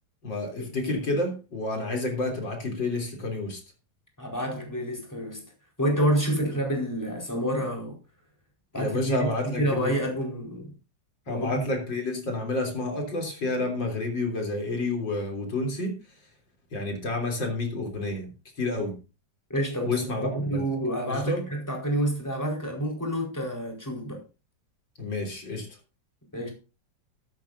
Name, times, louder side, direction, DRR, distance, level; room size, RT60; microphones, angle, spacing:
voice 1, 0.2-3.6 8.7-10.0 11.3-16.0 16.7-18.9 19.8-20.6 21.1-21.4 25.0-25.7, left 2 dB, 85° left, 4.1 m, -29 dB
voice 2, 4.2-5.4 5.8-7.9 8.7-10.7 11.3-11.6 19.5-24.2 26.3-26.5, right 1 dB, 10° left, 4.5 m, -28 dB
14.0 x 13.5 x 2.7 m
omnidirectional pair, 2.0 m